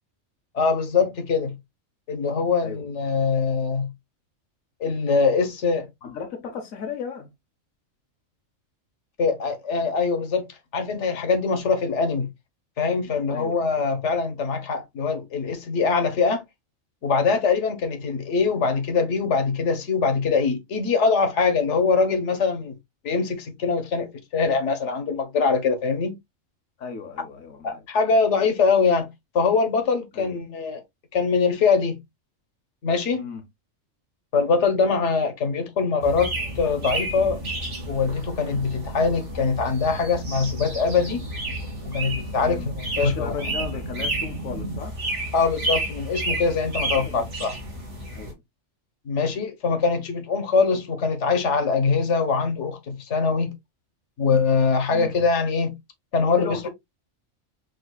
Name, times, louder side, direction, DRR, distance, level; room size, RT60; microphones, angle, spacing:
voice 1, 0.5-1.6 2.1-3.9 4.8-5.9 9.2-10.5 10.7-12.3 12.8-16.4 17.0-22.7 23.0-26.2 27.6-29.1 29.3-30.8 31.1-32.0 32.8-33.2 34.3-37.4 37.9-41.2 41.9-43.3 45.3-47.6 49.0-53.5 54.2-55.8 56.1-56.7, left 4 dB, 65° left, 1.4 m, -23 dB
voice 2, 6.0-7.3 13.3-13.7 26.8-27.8 30.1-30.4 33.1-33.4 42.4-42.7 43.0-45.0 46.8-47.3 48.1-48.4 54.9-55.1 56.3-56.7, left 5 dB, 85° left, 1.4 m, -35 dB
sound 1, 36.0-48.3, right 2 dB, 60° right, 2.5 m, -31 dB
6.5 x 2.9 x 2.3 m
omnidirectional pair, 1.4 m